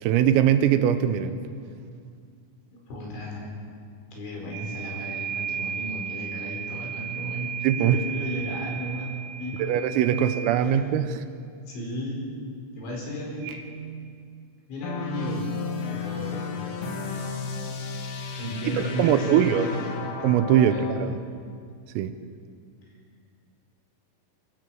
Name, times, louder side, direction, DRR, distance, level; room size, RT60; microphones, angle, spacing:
voice 1, 0.0-1.4 7.6-8.0 9.6-11.3 18.7-19.7 20.2-21.2 22.0-22.2, right 10 dB, 85° right, 10 dB, 3.6 m, -22 dB
voice 2, 2.9-3.5 4.1-9.8 10.1-10.3 10.6-10.9 11.7-12.3 12.8-13.9 14.7-15.5 15.9-16.7 18.4-20.1 20.7-20.9 22.9-23.0, equal, 60° left, -1 dB, 7.0 m, -34 dB
sound 1, 4.5-10.6 13.4-13.6, right 8 dB, 65° right, 3.2 m, -35 dB
sound 2, 14.8-21.0, left 4 dB, 75° left, 4.8 m, -33 dB
25.0 x 16.0 x 7.9 m, 2.2 s
omnidirectional pair, 6.0 m